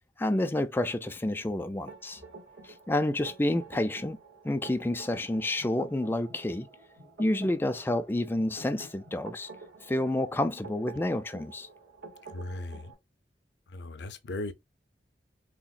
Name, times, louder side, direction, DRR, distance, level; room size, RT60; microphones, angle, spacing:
voice 1, 0.2-2.2 2.6-4.2 4.4-6.7 7.2-9.5 9.9-11.7, left 1 dB, 15° left, 0.3 m, -29 dB
sound 1, 1.9-12.9, right 3 dB, 85° right, 1.8 m, -49 dB
voice 2, 12.3-12.9 13.7-14.5, left 2 dB, 70° left, 0.5 m, -37 dB
3.4 x 2.8 x 2.4 m
head